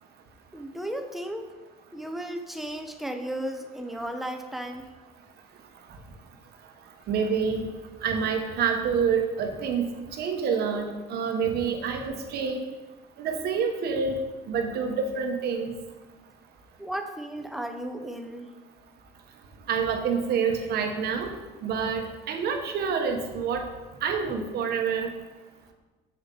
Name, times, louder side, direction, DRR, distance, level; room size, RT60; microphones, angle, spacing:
voice 1, 0.5-1.5 1.9-4.9 16.8-18.5, right 1 dB, ahead, 6 dB, 0.7 m, -34 dB
voice 2, 7.1-7.6 8.0-9.8 10.2-12.6 13.2-14.1 14.5-15.7 19.7-21.3 21.6-23.6 24.0-25.1, right 6 dB, 70° right, 4 dB, 1.1 m, -27 dB
7.0 x 6.6 x 3.9 m, 1.2 s
cardioid pair, 110°, 17 cm